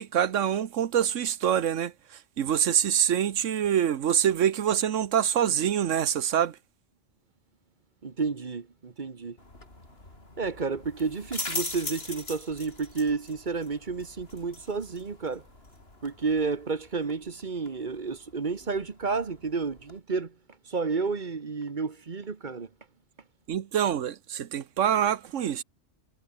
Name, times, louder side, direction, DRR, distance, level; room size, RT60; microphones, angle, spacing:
voice 1, 0.0-6.6 23.5-25.6, right 9 dB, 85° right, 1.3 m, -25 dB
voice 2, 8.0-9.4 10.4-15.4 16.0-20.3 20.7-22.7, right 4 dB, 40° right, 1.3 m, -31 dB
sound 1, 9.4-20.0, left 2 dB, 55° left, 5.2 m, -42 dB
omnidirectional pair, 1.2 m